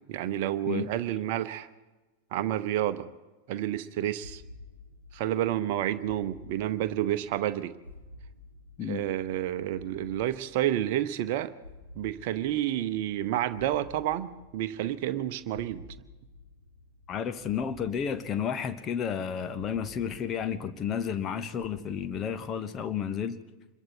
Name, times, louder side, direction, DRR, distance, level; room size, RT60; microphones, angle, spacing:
voice 1, 0.1-1.7 2.3-3.1 3.5-4.4 5.1-7.7 8.9-11.5 11.9-15.8, right 12 dB, 50° right, 11 dB, 0.9 m, -30 dB
sound 1, 4.2-23.1, left 2 dB, 85° left, 3.3 m, -52 dB
voice 2, 17.1-23.4, left 7 dB, 30° left, 10 dB, 1.2 m, -32 dB
26.5 x 22.0 x 4.5 m, 1.2 s
figure-of-eight pair, 90°, 0 cm